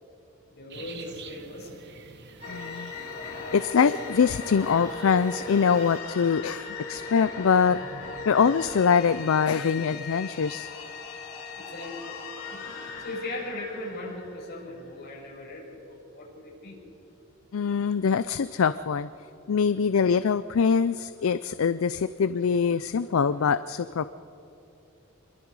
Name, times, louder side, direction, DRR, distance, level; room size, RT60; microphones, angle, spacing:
voice 1, 0.5-1.8 11.5-12.1 12.4-12.6 13.0-16.8, left 2 dB, 50° left, -3 dB, 7.0 m, -38 dB
sound 1, 0.7-6.0, right 5 dB, 55° right, 1.4 m, -48 dB
sound 2, 2.4-14.9, left 4 dB, 90° left, 4.4 m, -38 dB
voice 2, 2.5-2.9 3.5-7.8 8.3-10.7 17.5-19.1 19.5-24.1, left 6 dB, 70° left, 14 dB, 0.4 m, -24 dB
27.0 x 22.5 x 4.8 m, 2.8 s
head